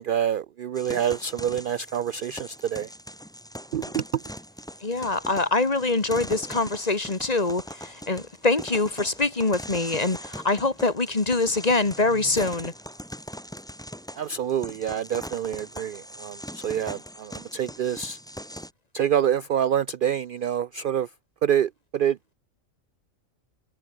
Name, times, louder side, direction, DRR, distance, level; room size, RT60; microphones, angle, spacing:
voice 1, 0.0-2.9 3.7-4.0 14.2-18.2 18.9-21.1 21.4-22.2, right 9 dB, 60° right, 0.5 m, -26 dB
sound 1, 0.7-18.7, equal, 5° left, 3.3 m, -41 dB
voice 2, 4.8-12.7, left 3 dB, 30° left, 1.7 m, -24 dB
omnidirectional pair, 1.4 m